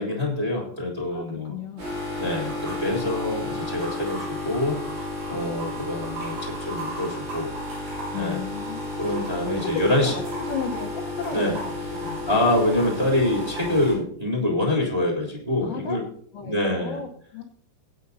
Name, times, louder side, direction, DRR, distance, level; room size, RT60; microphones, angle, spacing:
voice 1, 0.0-1.5 2.2-7.5 8.1-8.4 9.0-10.1 11.3-11.6 12.3-16.0 16.4-17.0, left 1 dB, 10° right, -2 dB, 2.7 m, -25 dB
voice 2, 1.1-1.9 8.1-8.8 9.6-12.5 15.6-16.1 16.3-17.4, left 6 dB, 65° left, 0 dB, 2.5 m, -34 dB
sound 1, 1.8-13.9, left 1 dB, 80° right, 9.2 m, -32 dB
22.5 x 9.3 x 2.8 m, 0.62 s
omnidirectional pair, 4.9 m